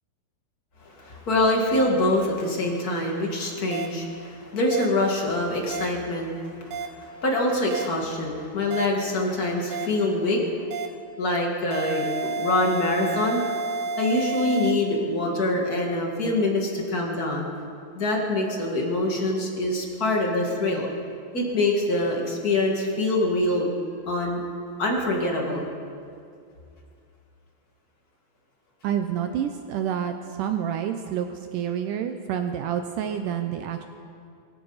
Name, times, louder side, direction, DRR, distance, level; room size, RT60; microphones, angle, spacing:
voice 1, 0.8-10.5 11.2-13.4 14.0-17.5 17.9-20.9 21.3-23.7 24.0-24.4 24.8-25.6, left 1 dB, 40° left, 0 dB, 1.4 m, -25 dB
sound 1, 3.7-3.9 4.7-4.9 5.7-5.9 6.7-6.9 7.7-7.9 8.7-8.9 9.7-9.9 10.7-10.9 11.7-14.7, right 4 dB, 65° right, 1.7 m, -30 dB
voice 2, 28.8-33.9, right 9 dB, 85° right, 7 dB, 1.8 m, -28 dB
22.5 x 15.5 x 4.0 m, 2.4 s
omnidirectional pair, 4.5 m